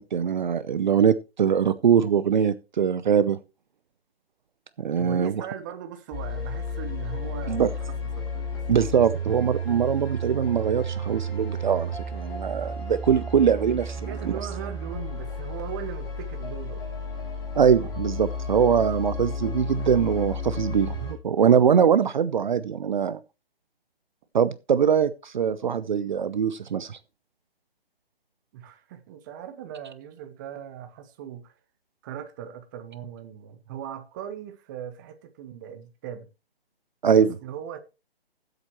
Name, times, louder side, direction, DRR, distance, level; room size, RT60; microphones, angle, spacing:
voice 1, 0.0-3.4 4.8-5.5 7.5-7.7 8.7-14.0 14.2-14.3 17.5-23.2 24.3-27.0 37.0-37.3, right 7 dB, 50° right, 0.7 m, -22 dB
voice 2, 5.0-8.6 8.9-9.0 14.1-16.8 28.5-31.5 32.0-36.3 37.1-37.8, right 9 dB, 20° right, 0.9 m, -39 dB
sound 1, 6.1-21.1, equal, 15° left, 2.5 m, -32 dB
18.5 x 7.9 x 3.1 m
figure-of-eight pair, 150°, 31 cm